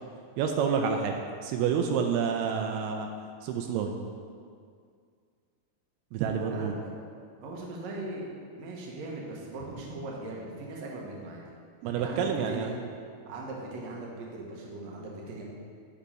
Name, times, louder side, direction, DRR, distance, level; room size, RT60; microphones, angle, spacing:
voice 1, 0.4-1.1 1.4-3.1 3.4-4.0 6.1-6.7 11.8-12.7, right 6 dB, 85° right, 3 dB, 2.5 m, -28 dB
voice 2, 6.2-7.1 7.4-8.3 8.6-11.4 12.0-12.8 13.3-15.4, right 2 dB, 65° right, -3 dB, 1.7 m, -39 dB
9.9 x 4.3 x 5.2 m, 2.2 s
omnidirectional pair, 4.5 m